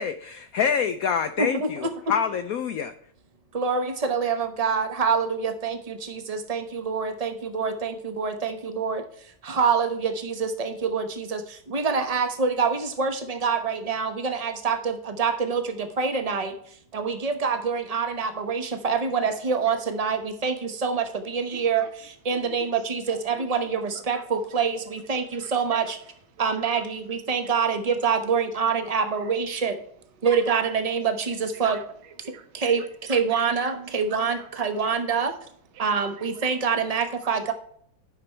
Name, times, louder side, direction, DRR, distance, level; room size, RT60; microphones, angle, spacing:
voice 1, 0.0-2.9, left 7 dB, 80° left, 10 dB, 0.7 m, -26 dB
voice 2, 1.4-1.7 3.5-26.0 26.4-29.8 30.2-31.8 32.5-35.3 35.8-37.5, right 5 dB, 35° right, 7 dB, 0.6 m, -26 dB
voice 3, 21.5-21.9 22.3-22.7 23.3-23.4 23.9-24.2 25.3-25.5 25.8-25.9 26.3-26.4 26.7-26.8 27.3-27.5 28.8-29.3 30.4-30.7 31.5-32.5 32.8-32.9 33.9-34.7 35.1-35.3 35.7-35.9 36.2-36.3 36.6-36.7 37.2-37.4, right 8 dB, 80° right, 10 dB, 1.6 m, -47 dB
10.5 x 6.0 x 4.4 m, 0.63 s
omnidirectional pair, 2.2 m